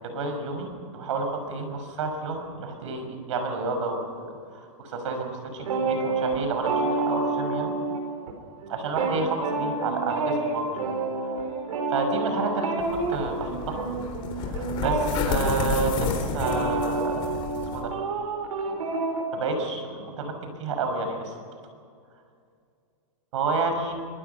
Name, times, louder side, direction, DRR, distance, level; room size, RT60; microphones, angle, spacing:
voice 1, 0.1-0.7 0.9-7.7 8.7-10.9 11.2-11.5 11.9-13.8 14.3-17.3 17.7-17.9 19.3-21.3 23.3-23.9, right 3 dB, 60° right, 6 dB, 6.1 m, -30 dB
sound 1, 5.6-8.3 8.6-19.2, right 3 dB, 75° right, 4.7 m, -29 dB
sound 2, 12.8-17.8, left 6 dB, 30° left, 3.8 m, -31 dB
24.0 x 22.0 x 5.8 m, 2.3 s
supercardioid pair, 170°, 18 cm